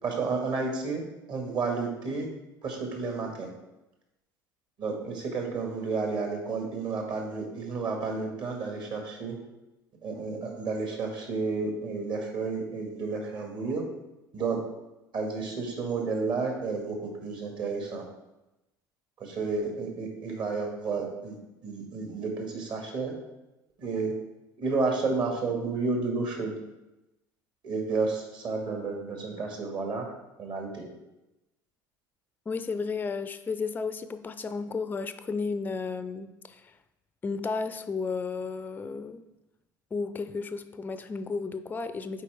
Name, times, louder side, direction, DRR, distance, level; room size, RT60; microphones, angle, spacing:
voice 1, 0.0-1.0 1.3-2.3 2.6-3.5 4.8-9.3 10.0-13.8 14.3-14.6 15.1-18.0 19.2-21.4 21.6-23.1 23.8-24.2 24.6-26.5 27.6-30.1 30.4-30.8, right 4 dB, 45° right, 2 dB, 1.8 m, -31 dB
voice 2, 32.5-36.6 37.2-39.2 39.9-42.2, left 4 dB, 15° left, 11 dB, 0.4 m, -33 dB
8.2 x 4.7 x 3.5 m, 0.97 s
figure-of-eight pair, 65°, 11 cm